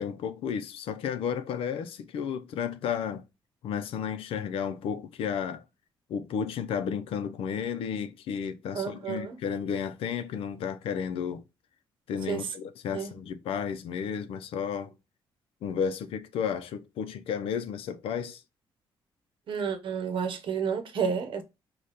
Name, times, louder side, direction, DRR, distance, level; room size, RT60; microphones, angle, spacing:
voice 1, 0.0-3.2 3.6-5.6 6.1-11.4 12.1-14.9 15.6-18.4, left 7 dB, 85° left, 0.5 m, -32 dB
voice 2, 8.7-9.4 12.3-12.5 12.9-13.1 19.5-21.4, right 6 dB, 65° right, 0.8 m, -31 dB
4.9 x 2.3 x 4.1 m
cardioid pair, 115°, 9 cm